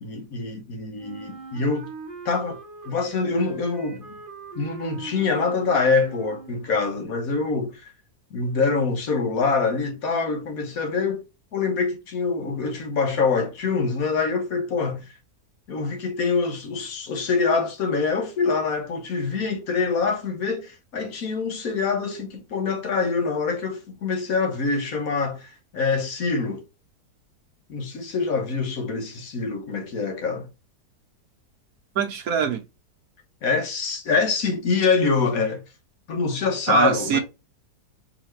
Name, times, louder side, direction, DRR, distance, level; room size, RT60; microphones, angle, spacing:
voice 1, 0.0-1.9 2.2-2.6 2.9-4.2 4.5-7.9 8.3-11.2 11.5-15.0 15.7-26.6 27.7-30.5 33.4-35.6 36.1-37.2, left 4 dB, 65° left, 1.4 m, -25 dB
Wind instrument woodwind instrument, 1.0-6.8, right 5 dB, 40° right, 1.0 m, -41 dB
voice 2, 31.9-32.6 36.7-37.2, right 7 dB, 65° right, 1.4 m, -23 dB
4.9 x 3.3 x 3.1 m
omnidirectional pair, 1.7 m